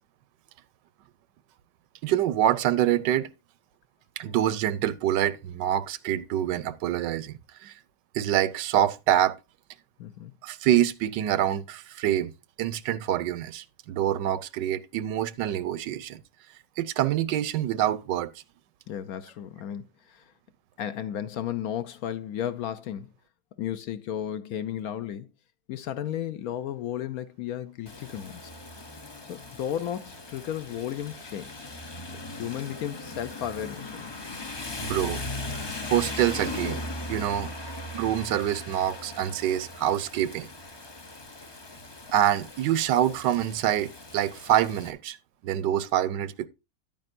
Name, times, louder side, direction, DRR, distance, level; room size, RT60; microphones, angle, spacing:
voice 1, 2.0-3.3 4.2-7.7 8.1-9.3 10.4-12.3 12.6-16.2 16.8-18.3 34.8-35.2 35.9-36.8 37.1-37.5 37.9-40.5 42.1-45.2 45.4-46.5, right 11 dB, 85° right, 1.3 m, -26 dB
voice 2, 10.0-10.3 18.9-20.2 20.8-23.1 23.6-25.3 25.7-28.5 29.3-31.5 32.1-34.1, left 10 dB, 70° left, 1.0 m, -34 dB
Rain, 27.9-44.9, left 2 dB, 40° left, 0.3 m, -39 dB
10.5 x 8.9 x 2.6 m
omnidirectional pair, 1.9 m